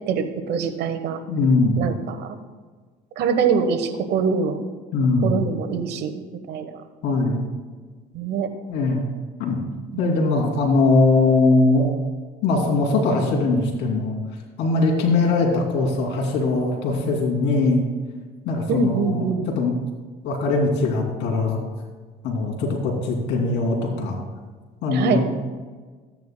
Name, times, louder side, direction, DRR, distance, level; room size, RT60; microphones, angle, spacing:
voice 1, 0.1-1.2 1.8-2.4 3.2-4.6 5.2-6.8 8.1-8.5 9.9-10.5 18.7-19.5 24.9-25.2, right 6 dB, 65° right, 7 dB, 1.1 m, -24 dB
voice 2, 1.3-1.8 4.9-5.4 7.0-7.4 8.7-9.1 9.4-9.6 10.0-11.9 12.4-14.1 14.6-17.8 18.4-19.7 20.2-21.6 22.2-24.2 24.8-25.2, left 3 dB, 70° left, 0 dB, 2.7 m, -21 dB
14.5 x 9.4 x 2.2 m, 1.4 s
supercardioid pair, 85°, 19 cm